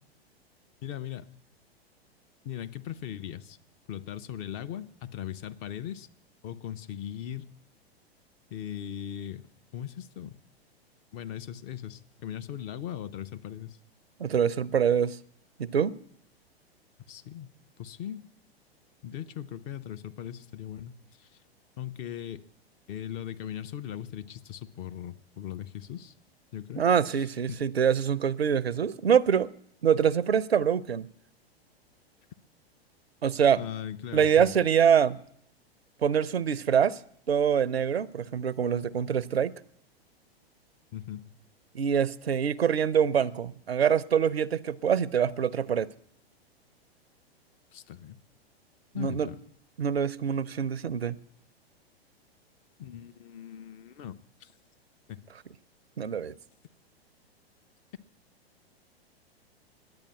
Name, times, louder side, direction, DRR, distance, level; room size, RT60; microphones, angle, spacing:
voice 1, 0.8-1.3 2.4-3.6 3.9-6.1 6.4-7.5 8.5-10.4 11.1-13.8 17.1-17.5 17.8-18.2 19.0-21.3 21.8-22.4 22.9-26.1 26.5-26.8 27.1-27.6 33.6-34.5 40.9-41.2 47.7-48.2 48.9-49.4 52.8-54.1 54.4-54.5 55.1-55.2, left 10 dB, 25° left, 0.5 m, -39 dB
voice 2, 14.2-15.2 15.6-15.9 26.8-29.5 29.8-31.1 33.2-33.6 34.1-35.2 36.0-37.0 37.3-39.5 41.7-45.9 48.9-49.3 49.8-51.2 56.0-56.3, right 8 dB, 75° right, 0.6 m, -25 dB
10.5 x 8.6 x 9.5 m
figure-of-eight pair, 100°, 31 cm